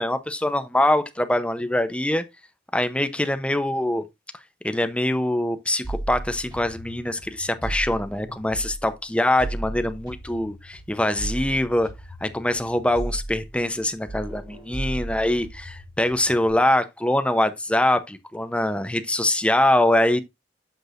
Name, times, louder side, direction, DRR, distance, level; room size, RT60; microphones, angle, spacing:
voice 1, 0.0-2.2 2.7-4.0 4.6-11.9 12.2-20.2, left 1 dB, 5° left, 0.6 m, -23 dB
sound 1, 5.8-8.9 9.4-13.8 14.1-16.5, right 1 dB, 25° right, 3.8 m, -35 dB
8.0 x 6.1 x 2.5 m
head